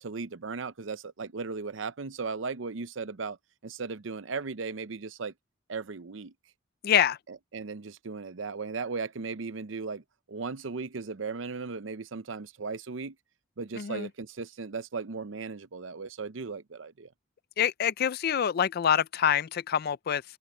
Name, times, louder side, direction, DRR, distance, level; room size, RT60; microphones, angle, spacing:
voice 1, 0.0-3.4 3.6-5.3 5.7-6.3 7.3-10.0 10.3-13.2 13.6-17.1, right 4 dB, 80° right, 0.7 m, -36 dB
voice 2, 6.8-7.2 13.8-14.1 17.6-20.2, left 9 dB, 50° left, 0.4 m, -26 dB
head